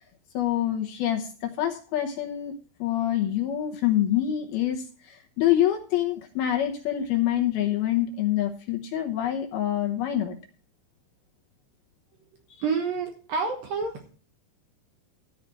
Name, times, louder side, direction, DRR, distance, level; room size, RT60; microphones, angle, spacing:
voice 1, 0.3-2.5 2.8-10.4, left 12 dB, 70° left, 2 dB, 2.6 m, -26 dB
voice 2, 12.6-14.1, right 5 dB, 65° right, 3 dB, 2.4 m, -28 dB
14.0 x 4.9 x 8.1 m, 0.41 s
omnidirectional pair, 5.3 m